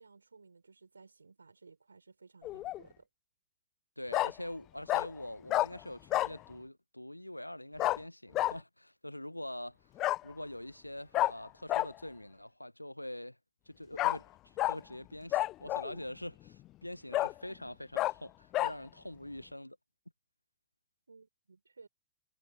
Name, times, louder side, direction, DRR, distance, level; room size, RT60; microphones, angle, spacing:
voice 1, 0.0-3.1 21.1-21.9, right 4 dB, 80° right, 4.4 m, -58 dB
Bark, 2.4-2.8 4.1-4.3 4.9-5.1 5.5-5.7 6.1-6.3 7.8-8.0 8.3-8.5 10.0-10.2 11.1-11.3 11.7-11.9 14.0-14.2 14.6-14.8 15.3-15.9 16.5-16.6 17.1-17.3 18.0-18.1 18.5-18.7, left 16 dB, 35° left, 0.8 m, -29 dB
voice 2, 4.0-9.8 10.2-13.4 13.7-19.8, left 1 dB, 90° left, 1.0 m, -44 dB
figure-of-eight pair, 95°, 0 cm